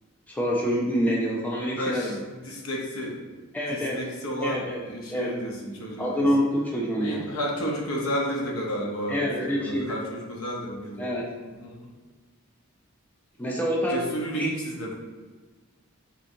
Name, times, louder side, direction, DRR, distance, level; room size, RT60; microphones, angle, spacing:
voice 1, 0.3-2.2 3.5-4.0 4.4-4.8 5.1-5.3 6.0-7.4 9.1-10.0 11.0-11.3 13.4-14.0 14.3-14.5, equal, 10° left, -3 dB, 0.4 m, -26 dB
voice 2, 1.8-3.2 3.7-6.3 7.0-11.1 11.4-11.9 13.9-14.9, equal, 70° left, -1 dB, 0.7 m, -32 dB
4.4 x 2.6 x 2.6 m, 1.3 s
head